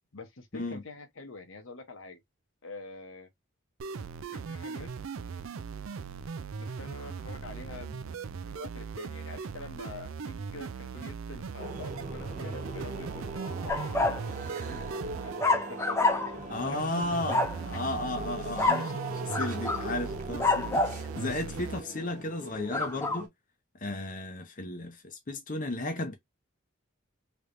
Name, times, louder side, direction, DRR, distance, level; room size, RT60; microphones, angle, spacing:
voice 1, 0.1-2.2 2.6-3.3 4.3-4.9 6.6-14.2 14.5-17.3 17.7-17.8, left 3 dB, 70° left, 0.9 m, -46 dB
sound 1, 3.8-21.8, right 5 dB, 75° right, 0.4 m, -39 dB
sound 2, 11.6-23.3, right 2 dB, 35° right, 1.1 m, -41 dB
sound 3, 13.7-14.2 15.4-16.4 17.3-17.6 18.6-18.9 19.3-19.9 20.4-21.0 22.7-23.2, left 3 dB, 15° left, 0.5 m, -27 dB
voice 2, 16.5-23.3 23.8-26.1, left 2 dB, 40° left, 0.8 m, -34 dB
3.3 x 3.1 x 2.6 m
head